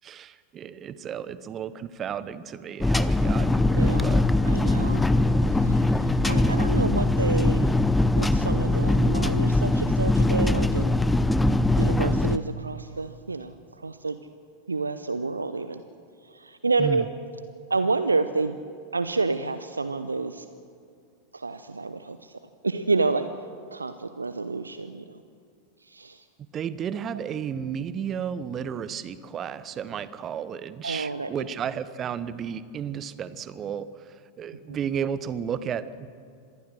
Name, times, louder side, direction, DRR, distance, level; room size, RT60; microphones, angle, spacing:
voice 1, 0.0-4.2 16.8-17.1 26.5-36.1, right 8 dB, 25° right, 15 dB, 1.1 m, -33 dB
sound 1, 2.8-12.4, left 2 dB, 5° left, 0.7 m, -22 dB
voice 2, 3.7-4.1 4.5-5.1 5.6-7.7 8.2-10.9 11.8-14.2 14.7-15.8 16.2-17.1 17.7-18.6 18.9-20.4 21.3-22.3 22.6-23.3 23.7-25.2 25.9-26.2 30.8-31.3, right 3 dB, 80° right, 11 dB, 0.8 m, -29 dB
26.0 x 19.5 x 6.5 m, 2.3 s
figure-of-eight pair, 90°, 0 cm